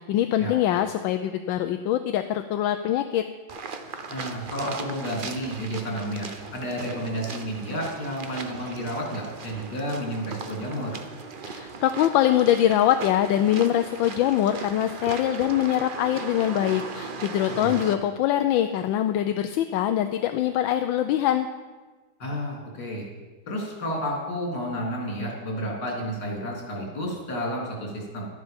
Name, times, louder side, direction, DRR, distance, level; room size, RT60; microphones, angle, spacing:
voice 1, 0.0-3.2 11.4-21.5, left 11 dB, 80° left, 8 dB, 1.3 m, -23 dB
sound 1, 3.5-17.9, right 4 dB, 65° right, 0.5 m, -38 dB
voice 2, 4.1-11.0 17.6-17.8 22.2-23.1 23.5-28.3, equal, 60° left, -2 dB, 4.1 m, -31 dB
12.5 x 11.0 x 5.2 m, 1.3 s
omnidirectional pair, 2.1 m